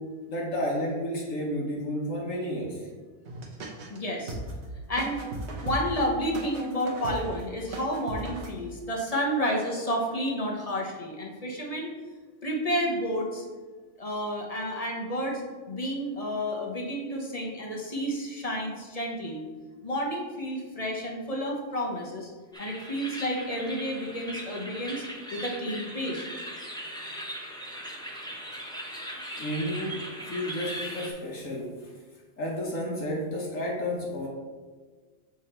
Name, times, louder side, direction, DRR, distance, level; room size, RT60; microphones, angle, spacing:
voice 1, 0.3-2.9 29.4-31.9 32.4-34.3, equal, 70° left, -2 dB, 1.4 m, -31 dB
sound 1, 3.3-4.0 4.3-8.5, right 2 dB, 55° right, 1.1 m, -37 dB
voice 2, 3.9-4.3 4.9-5.2 5.6-11.9 12.4-13.4 14.0-15.4 15.7-19.4 19.8-22.3 22.6-25.0 25.3-26.3, equal, 30° left, -1 dB, 0.9 m, -30 dB
sound 2, 22.5-31.1, equal, 5° left, 0.5 m, -39 dB
6.7 x 3.7 x 4.3 m, 1.4 s
omnidirectional pair, 1.4 m